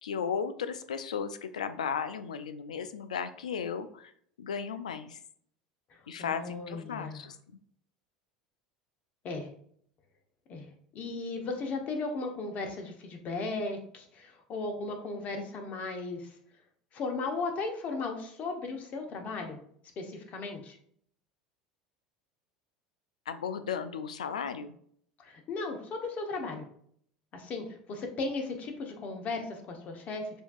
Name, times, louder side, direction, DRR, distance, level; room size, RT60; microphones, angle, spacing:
voice 1, 0.0-4.1 4.4-5.2 6.1-7.4 23.3-24.8, left 6 dB, 85° left, 11 dB, 0.4 m, -35 dB
voice 2, 5.9-7.2 9.2-9.5 10.5-10.7 10.9-16.3 16.9-19.6 20.0-20.8 25.2-26.7 27.3-30.4, left 3 dB, 45° left, 3 dB, 1.0 m, -36 dB
6.8 x 2.7 x 2.4 m, 0.63 s
hypercardioid pair, 80°, 4 cm